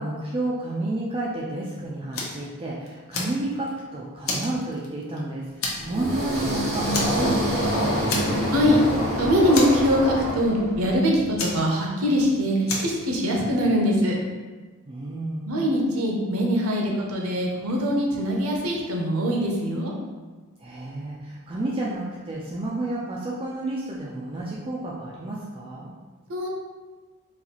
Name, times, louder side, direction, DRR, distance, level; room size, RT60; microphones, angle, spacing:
voice 1, 0.0-7.9 14.9-15.6 20.6-25.9, right 2 dB, 25° right, -5 dB, 0.3 m, -31 dB
Fire, 2.1-2.5 2.9-3.8 4.2-5.2 5.6-6.0 6.3-6.5 6.9-7.7 8.1-8.7 8.9-9.0 9.5-10.3 11.4-12.2 12.7-13.0, left 3 dB, 60° left, 0.6 m, -30 dB
sound 1, 5.8-10.9, equal, 45° right, 1.0 m, -26 dB
voice 2, 8.4-14.2 15.5-19.9 26.3-26.5, equal, 75° right, -1 dB, 0.7 m, -23 dB
3.9 x 2.4 x 2.9 m, 1.3 s
head